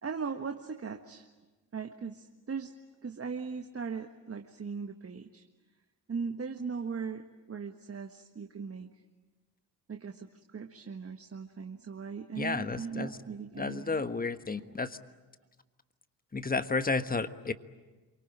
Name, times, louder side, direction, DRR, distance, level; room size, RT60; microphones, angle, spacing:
voice 1, 0.0-1.3 1.7-2.7 3.0-5.4 6.1-8.9 9.9-14.8, right 5 dB, 30° right, 5 dB, 1.7 m, -39 dB
voice 2, 12.4-13.1 13.6-14.9 16.3-17.5, left 4 dB, 20° left, 11 dB, 1.5 m, -32 dB
27.5 x 24.5 x 8.8 m, 1.2 s
hypercardioid pair, 50°, 46 cm